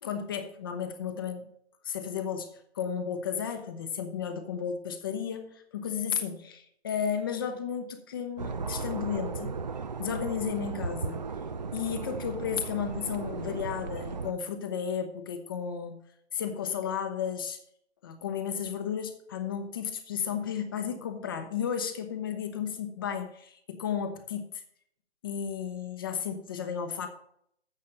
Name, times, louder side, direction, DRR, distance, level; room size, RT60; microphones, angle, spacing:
voice 1, 0.0-1.5 1.8-9.5 10.0-11.3 11.7-16.0 16.3-17.6 18.0-24.6 25.2-27.1, left 7 dB, 20° left, 7 dB, 0.8 m, -33 dB
sound 1, 8.4-14.3, right 4 dB, 40° right, 0.5 m, -36 dB
7.4 x 6.3 x 7.5 m, 0.69 s
figure-of-eight pair, 150°, 33 cm